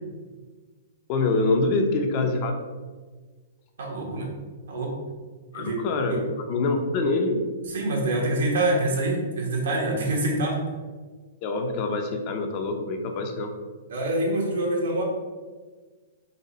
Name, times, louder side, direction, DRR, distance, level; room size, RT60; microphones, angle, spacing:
voice 1, 1.1-2.5 5.5-7.4 11.4-13.5, left 3 dB, 35° left, 4 dB, 0.5 m, -25 dB
voice 2, 3.8-4.3 4.7-5.0 5.5-5.8 6.1-6.2 7.7-10.6 13.9-15.0, right 1 dB, 80° right, -2 dB, 1.5 m, -26 dB
4.1 x 3.0 x 4.1 m, 1.4 s
hypercardioid pair, 155°, 0 cm